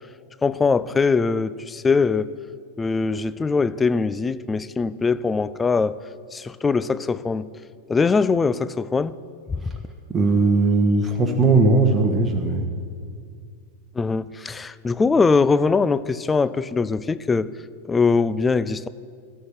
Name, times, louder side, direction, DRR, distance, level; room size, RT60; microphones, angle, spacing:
voice 1, 0.4-2.3 2.8-6.0 6.3-7.5 7.9-9.1 9.5-9.6 13.9-17.5 17.8-18.9, left 4 dB, 15° left, 16 dB, 0.4 m, -21 dB
voice 2, 10.1-12.6, right 3 dB, 15° right, 2 dB, 1.3 m, -18 dB
12.5 x 6.7 x 9.1 m, 2.2 s
figure-of-eight pair, 90°, 0 cm